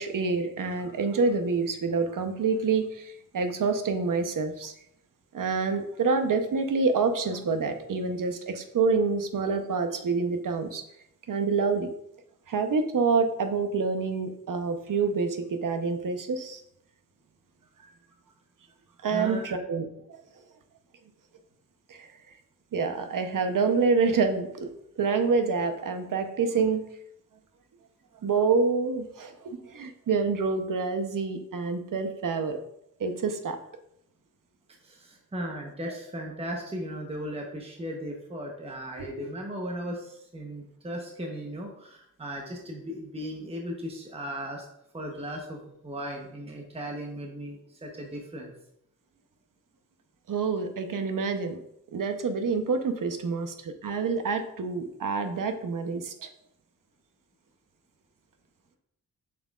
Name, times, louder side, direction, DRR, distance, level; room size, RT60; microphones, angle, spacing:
voice 1, 0.0-4.7 5.3-10.8 11.3-11.9 12.5-16.6 19.0-20.2 21.9-22.1 22.7-24.7 25.0-26.8 28.2-32.6 33.0-33.6 35.9-36.0 39.0-39.3 50.3-51.6 51.9-56.3, right 4 dB, 65° right, 7 dB, 0.8 m, -27 dB
voice 2, 19.1-19.6 34.8-44.7 44.9-48.5, equal, 15° right, 0 dB, 0.9 m, -37 dB
7.3 x 6.1 x 2.4 m, 0.76 s
wide cardioid pair, 145°, 34 cm